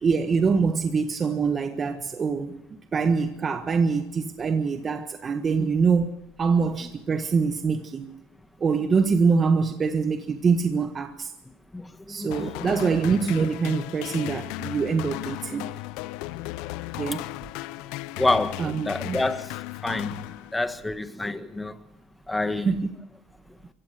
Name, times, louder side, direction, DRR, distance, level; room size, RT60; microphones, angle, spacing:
voice 1, 0.0-6.1 6.4-8.2 8.6-11.3 12.1-15.7 17.0-17.2 18.6-19.2 22.6-22.9, right 5 dB, 30° right, 1.5 m, -24 dB
voice 2, 11.7-12.7 18.2-21.8 22.3-22.8, left 2 dB, 10° left, 1.6 m, -28 dB
sound 1, 12.3-20.9, left 19 dB, 70° left, 0.7 m, -36 dB
24.5 x 16.0 x 6.7 m
supercardioid pair, 90°, 0 cm